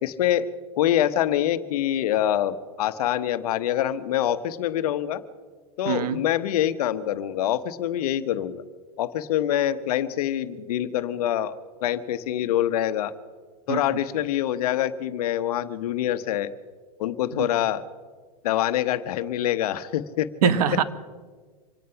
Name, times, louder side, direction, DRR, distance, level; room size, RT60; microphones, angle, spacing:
voice 1, 0.0-0.5 0.7-5.2 5.8-8.6 9.0-13.1 13.7-16.5 17.0-17.8 18.4-20.3, left 11 dB, 75° left, 12 dB, 1.1 m, -25 dB
voice 2, 5.8-6.2 13.7-13.8 17.3-17.5 20.4-20.8, right 9 dB, 80° right, 13 dB, 1.2 m, -23 dB
26.0 x 9.5 x 5.7 m, 1.5 s
supercardioid pair, 125°, 20 cm